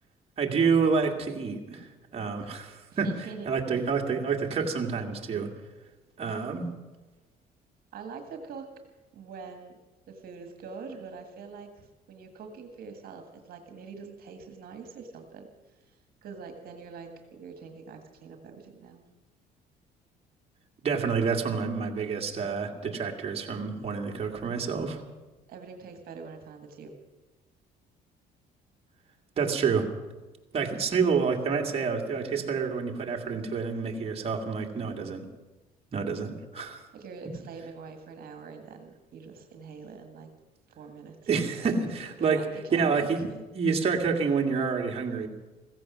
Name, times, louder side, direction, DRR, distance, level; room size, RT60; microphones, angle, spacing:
voice 1, 0.4-3.1 3.5-5.5 6.2-6.7 20.8-25.0 29.4-29.9 30.5-35.3 35.9-36.9 41.3-42.4 42.7-43.2 43.5-45.3, right 5 dB, 35° right, 1 dB, 2.0 m, -28 dB
voice 2, 2.9-3.9 7.9-8.7 9.1-9.7 10.1-19.0 25.5-26.9 36.9-40.3 40.7-41.9 42.2-43.4, right 5 dB, 60° right, 5 dB, 1.6 m, -44 dB
15.5 x 15.0 x 6.1 m, 1.2 s
cardioid pair, 110°, 17 cm